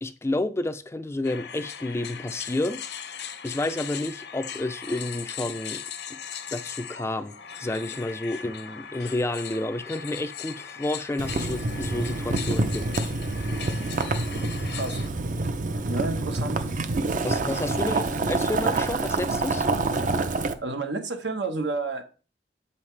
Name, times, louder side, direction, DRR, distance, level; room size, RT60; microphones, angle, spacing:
voice 1, 0.0-2.8 3.4-5.8 6.1-6.2 6.5-12.9 17.2-19.7, left 2 dB, 15° left, 0.4 m, -30 dB
sound 1, 1.2-15.1, left 8 dB, 65° left, 0.7 m, -39 dB
Boiling, 11.2-20.5, right 3 dB, 45° right, 0.5 m, -27 dB
voice 2, 15.9-16.6 17.0-17.1 20.6-22.0, right 3 dB, 85° right, 1.2 m, -30 dB
7.8 x 5.5 x 3.3 m
head